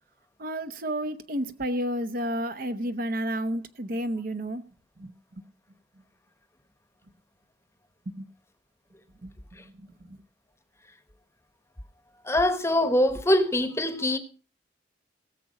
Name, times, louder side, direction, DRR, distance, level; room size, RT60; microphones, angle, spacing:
voice 1, 0.4-4.6 5.0-5.1 8.1-8.3 9.2-9.4 9.6-10.2, right 1 dB, 50° right, 0.9 m, -31 dB
voice 2, 12.2-14.2, left 1 dB, 15° left, 1.0 m, -23 dB
18.0 x 7.2 x 4.9 m
head